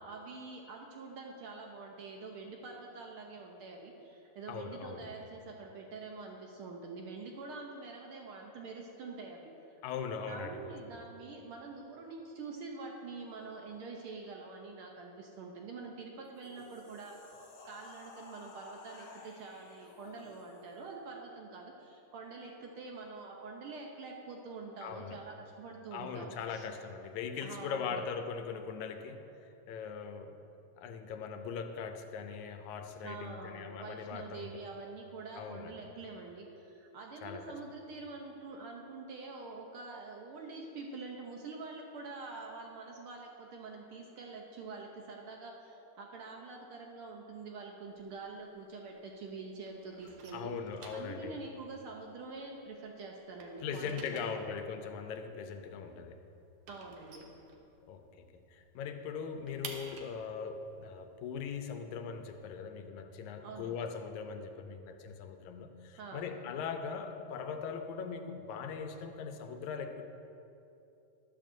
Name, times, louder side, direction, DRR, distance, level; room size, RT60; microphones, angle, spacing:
voice 1, 0.0-9.7 10.3-26.7 27.4-28.0 33.0-50.5 50.9-54.4 56.7-57.3 63.4-63.9 66.0-66.3, right 3 dB, 80° right, 1 dB, 1.2 m, -46 dB
voice 2, 4.5-5.1 9.8-10.6 24.8-25.2 25.9-29.3 29.7-30.4 30.8-34.7 35.4-35.7 37.2-37.6 50.3-51.4 53.6-56.2 57.9-70.0, left 6 dB, 85° left, 7 dB, 2.0 m, -40 dB
sound 1, 16.2-20.8, left 3 dB, 70° left, 1.0 m, -54 dB
sound 2, 47.9-49.3 49.6-52.8 53.1-58.1 58.5-58.6 58.9-62.6, right 4 dB, 65° right, 1.7 m, -52 dB
13.5 x 12.0 x 2.6 m, 2.8 s
omnidirectional pair, 3.4 m